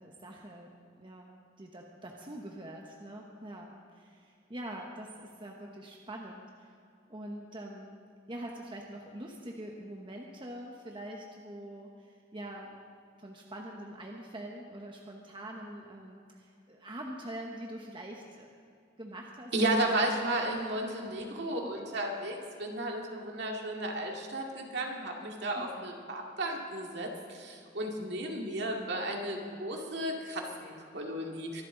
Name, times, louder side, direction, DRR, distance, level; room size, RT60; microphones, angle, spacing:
voice 1, 0.0-6.8 7.1-8.0 8.3-12.8 13.2-18.5 19.0-20.1 20.5-20.6 21.0-21.1 21.5-21.7 25.5-25.7, right 1 dB, 25° right, 0 dB, 1.1 m, -44 dB
voice 2, 19.5-31.6, right 1 dB, 60° right, 0 dB, 2.3 m, -33 dB
24.0 x 12.0 x 3.9 m, 2.5 s
head